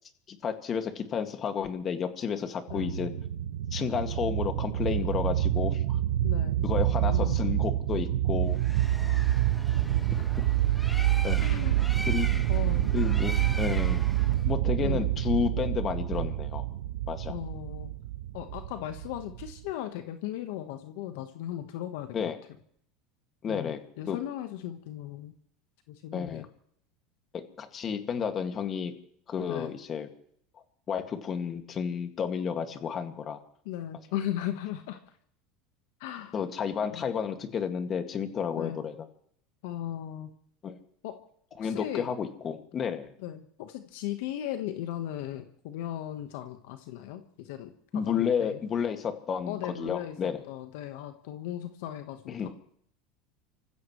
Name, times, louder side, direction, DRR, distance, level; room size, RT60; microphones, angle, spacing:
voice 1, 0.3-3.1 3.7-6.0 6.6-8.6 11.2-11.4 12.1-12.4 12.9-14.0 14.4-16.6 17.1-17.3 22.1-22.4 23.4-23.8 24.1-24.2 26.1-26.5 27.6-28.9 29.3-30.1 30.9-33.4 36.3-38.9 40.6-40.8 41.6-43.1 47.9-50.4 52.3-52.5, left 7 dB, 35° left, 6 dB, 2.0 m, -31 dB
sound 1, 2.7-19.7, right 13 dB, 80° right, 0.8 m, -27 dB
voice 2, 6.2-6.6 7.0-7.7 11.4-11.8 12.5-12.9 14.8-15.0 17.3-17.9 18.3-22.3 23.5-25.3 25.9-26.5 29.4-29.7 33.6-35.0 36.0-36.4 36.9-37.1 38.6-38.8 39.6-40.3 41.0-41.1 41.6-42.1 43.2-48.6 49.5-50.2 50.5-52.5, left 12 dB, 75° left, 8 dB, 1.3 m, -37 dB
Bird, 8.5-14.5, left 1 dB, 5° left, 1.2 m, -40 dB
29.5 x 15.0 x 3.2 m, 0.64 s
supercardioid pair, 115°, 0 cm